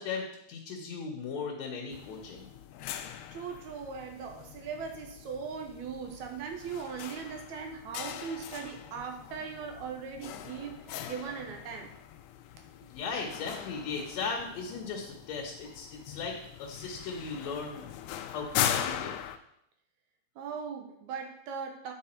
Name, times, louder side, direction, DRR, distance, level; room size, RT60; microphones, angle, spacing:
voice 1, 0.0-2.5 12.9-17.8 18.3-19.1, left 5 dB, 70° left, 0 dB, 2.1 m, -37 dB
sound 1, 1.9-19.4, left 10 dB, 90° left, 2.0 m, -40 dB
voice 2, 3.0-11.9 12.7-12.9 20.4-21.9, right 6 dB, 80° right, 3 dB, 2.1 m, -39 dB
8.7 x 4.6 x 4.3 m, 0.75 s
omnidirectional pair, 3.4 m